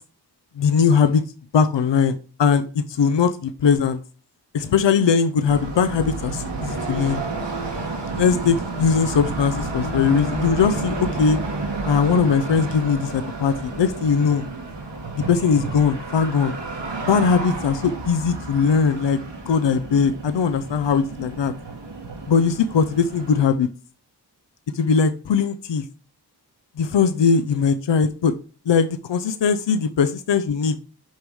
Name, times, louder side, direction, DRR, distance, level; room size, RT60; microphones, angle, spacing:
voice 1, 0.6-1.2 1.5-4.0 4.5-7.2 8.2-11.4 11.9-14.5 15.2-16.6 17.1-19.2 19.5-21.5 22.3-23.7 24.7-25.9 26.8-28.3 28.7-30.8, left 6 dB, 85° left, 11 dB, 0.6 m, -20 dB
sound 1, 5.5-23.5, right 3 dB, 85° right, 1.8 m, -31 dB
6.4 x 5.4 x 4.8 m, 0.37 s
wide cardioid pair, 50°, 42 cm